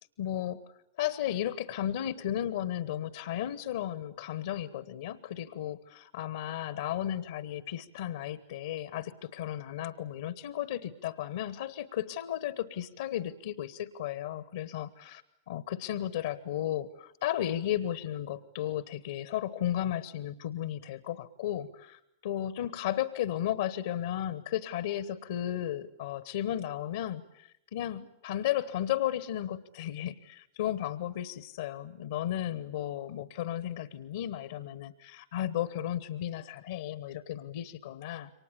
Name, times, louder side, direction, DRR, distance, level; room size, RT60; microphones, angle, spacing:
voice 1, 0.2-0.6 1.0-38.3, left 11 dB, 60° left, 18 dB, 1.1 m, -34 dB
28.5 x 24.5 x 8.5 m, 0.75 s
figure-of-eight pair, 90°, 0 cm